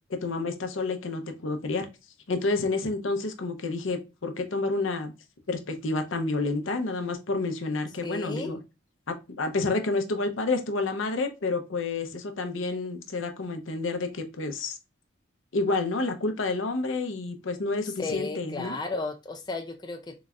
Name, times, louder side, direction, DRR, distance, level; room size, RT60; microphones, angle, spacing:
voice 1, 0.1-1.9 2.3-5.1 5.5-8.6 9.1-14.8 15.5-18.8, left 3 dB, 85° left, 0.7 m, -29 dB
voice 2, 8.0-8.6 17.8-20.2, left 3 dB, 20° left, 0.4 m, -34 dB
3.9 x 2.4 x 3.0 m
head